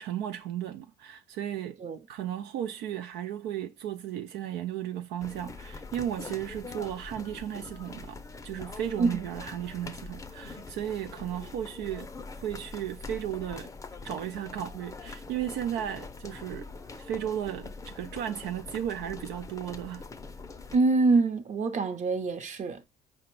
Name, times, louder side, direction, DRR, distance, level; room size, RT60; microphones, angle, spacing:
voice 1, 0.0-1.8 2.1-8.2 8.4-12.1 12.4-13.7 14.0-16.7 16.9-20.0, right 10 dB, 80° right, 0.4 m, -35 dB
sound 1, 5.2-20.8, left 4 dB, 20° left, 0.5 m, -43 dB
voice 2, 20.7-22.9, right 3 dB, 45° right, 0.8 m, -25 dB
5.0 x 2.2 x 4.5 m
cardioid pair, 110°, 17 cm